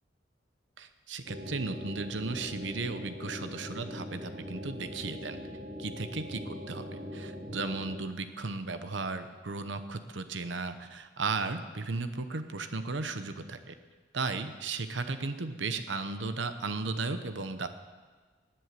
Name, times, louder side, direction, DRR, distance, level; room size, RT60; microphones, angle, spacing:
voice 1, 0.8-5.4 5.8-13.7 14.1-17.7, right 3 dB, 70° right, 10 dB, 0.9 m, -35 dB
sound 1, 1.3-8.0, left 1 dB, 40° right, 2.3 m, -41 dB
19.0 x 7.8 x 6.8 m, 1.4 s
head